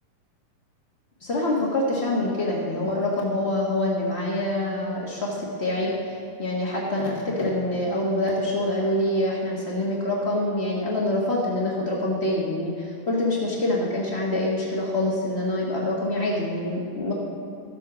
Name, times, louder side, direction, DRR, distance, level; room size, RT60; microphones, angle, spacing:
voice 1, 1.2-17.1, left 1 dB, 75° left, -4 dB, 0.6 m, -25 dB
14.5 x 7.6 x 6.2 m, 2.4 s
omnidirectional pair, 3.9 m